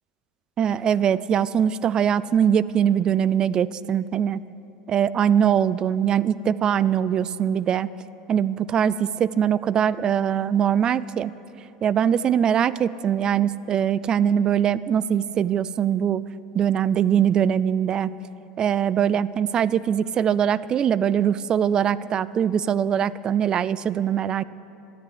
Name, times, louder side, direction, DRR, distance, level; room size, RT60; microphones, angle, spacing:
voice 1, 0.6-4.4 4.9-7.9 8.3-11.3 11.8-16.2 16.5-18.1 18.6-24.4, right 8 dB, 30° right, 18 dB, 0.4 m, -22 dB
13.0 x 9.9 x 9.5 m, 2.8 s
supercardioid pair, 130°, 3 cm